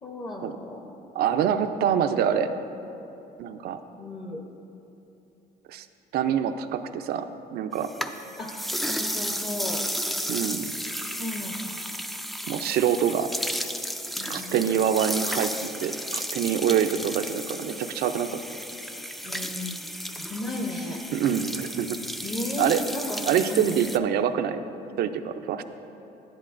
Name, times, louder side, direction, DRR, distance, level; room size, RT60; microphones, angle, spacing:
voice 1, 0.0-0.8 4.0-4.4 8.4-9.8 11.2-11.8 14.2-14.5 19.2-19.9 20.2-21.0 22.2-23.7, left 2 dB, 25° left, 0 dB, 0.8 m, -34 dB
voice 2, 1.1-2.5 3.4-3.8 5.7-5.9 6.1-7.9 10.3-10.8 12.5-13.3 14.3-18.3 21.1-22.0 22.6-22.8 23.2-24.6 25.0-25.6, right 9 dB, 70° right, 9 dB, 0.5 m, -25 dB
sound 1, 7.7-24.0, equal, ahead, 0.3 m, -33 dB
11.0 x 10.5 x 2.5 m, 3.0 s
cardioid pair, 110°, 17 cm